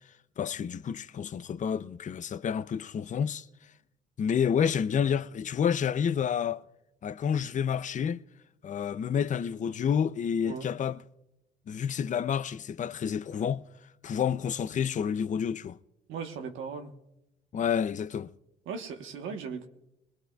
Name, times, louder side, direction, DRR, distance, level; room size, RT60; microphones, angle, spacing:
voice 1, 0.4-3.5 4.2-6.6 7.0-8.2 8.6-11.0 11.7-13.6 14.0-15.8 17.5-18.3, left 7 dB, 40° left, 0.5 m, -29 dB
voice 2, 16.1-16.9 18.7-19.7, right 5 dB, 85° right, 1.1 m, -38 dB
21.0 x 19.0 x 2.3 m
cardioid pair, 90°, 20 cm